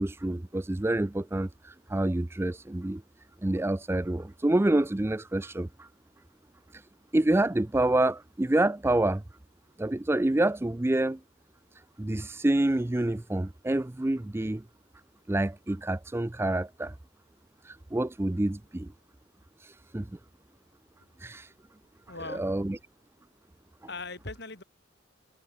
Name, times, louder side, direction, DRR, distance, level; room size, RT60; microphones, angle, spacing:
voice 1, 0.0-3.0 3.4-5.9 6.7-6.8 7.1-9.2 9.8-11.2 12.0-14.6 15.3-16.9 17.6-18.9 19.6-20.1 21.2-21.5 22.3-22.8, right 1 dB, 10° right, 0.4 m, -27 dB
voice 2, 22.1-22.5 23.9-24.6, left 3 dB, 55° left, 6.5 m, -39 dB
head